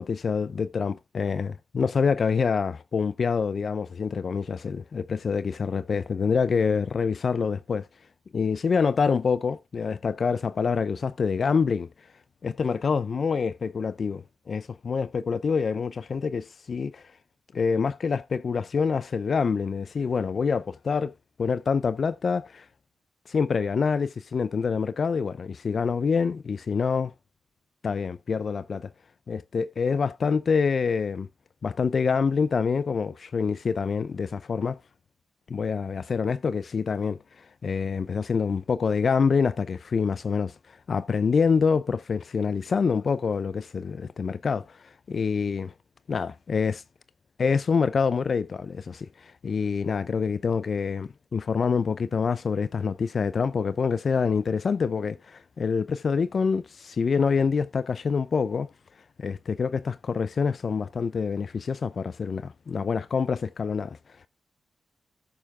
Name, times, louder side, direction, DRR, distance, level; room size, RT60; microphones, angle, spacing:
voice 1, 0.0-7.9 8.3-11.9 12.4-17.1 17.5-21.1 21.4-22.7 23.3-27.1 27.8-28.9 29.3-31.3 31.6-34.8 35.5-45.7 46.1-46.8 47.4-58.7 59.2-64.0, left 5 dB, 55° left, 0.4 m, -26 dB
14.0 x 6.9 x 3.5 m
wide cardioid pair, 115°, 0 cm